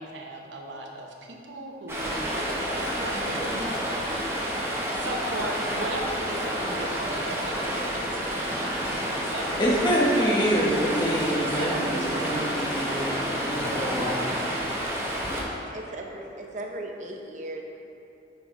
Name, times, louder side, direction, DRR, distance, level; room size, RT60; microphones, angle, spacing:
voice 1, 0.0-4.4 4.9-8.6 9.2-9.6 10.2-11.3 11.5-12.7, right 1 dB, 80° right, 1 dB, 0.9 m, -37 dB
Stream, 1.9-15.4, equal, 15° right, 0.9 m, -29 dB
voice 2, 9.6-14.3, equal, 25° left, -4 dB, 1.0 m, -26 dB
voice 3, 15.7-17.6, right 1 dB, 40° right, 2 dB, 0.7 m, -37 dB
8.4 x 5.8 x 3.6 m, 3.0 s
head